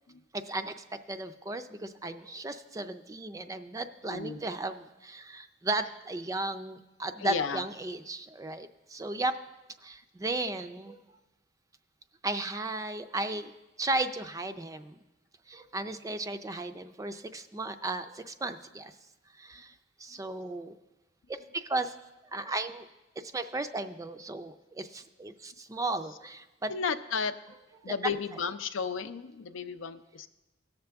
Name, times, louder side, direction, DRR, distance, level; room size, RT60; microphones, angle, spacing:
voice 1, 0.3-9.3 9.8-11.0 12.2-13.5 13.8-15.0 15.5-18.9 19.4-19.7 20.0-20.7 21.3-21.9 22.3-22.9 23.2-26.7 28.0-28.1, right 2 dB, 15° right, 10 dB, 0.4 m, -35 dB
voice 2, 4.0-4.4 5.8-5.9 7.2-7.6 26.0-26.2 26.7-27.3 27.8-30.3, left 5 dB, 75° left, 11 dB, 0.5 m, -34 dB
18.0 x 6.7 x 3.4 m, 1.0 s
head